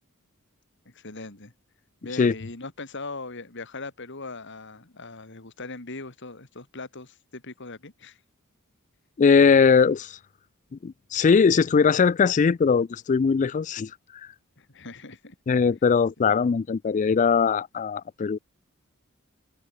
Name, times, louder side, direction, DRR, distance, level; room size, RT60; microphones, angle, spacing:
voice 1, 0.9-1.5 2.0-8.2 14.6-15.3, left 3 dB, 60° left, 2.8 m, -40 dB
voice 2, 9.2-10.2 10.8-13.9 15.5-18.4, left 5 dB, 35° left, 0.3 m, -20 dB
head